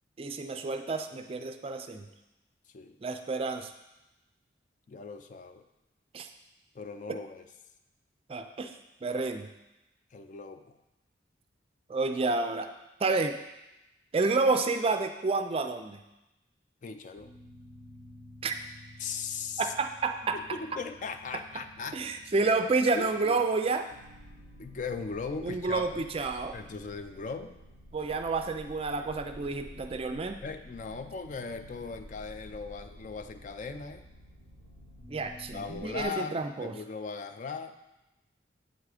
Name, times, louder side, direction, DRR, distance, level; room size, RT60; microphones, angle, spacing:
voice 1, 0.2-2.1 3.0-3.7 6.1-6.3 8.3-8.7 9.0-9.5 11.9-12.7 13.0-13.4 14.1-16.0 18.4-18.6 19.6-20.4 21.9-23.9 25.4-26.5 27.9-30.4 35.1-36.7, right 3 dB, 30° right, 7 dB, 0.4 m, -29 dB
voice 2, 4.9-5.6 6.7-7.5 10.1-10.8 16.8-17.3 19.0-19.7 20.3-22.1 22.4-22.5 23.0-23.4 24.6-26.1 26.5-27.6 30.4-34.0 35.5-37.7, left 5 dB, 40° left, 8 dB, 0.4 m, -38 dB
sound 1, 17.2-36.1, left 1 dB, 60° left, 1.0 m, -51 dB
8.1 x 3.6 x 4.9 m, 0.96 s
head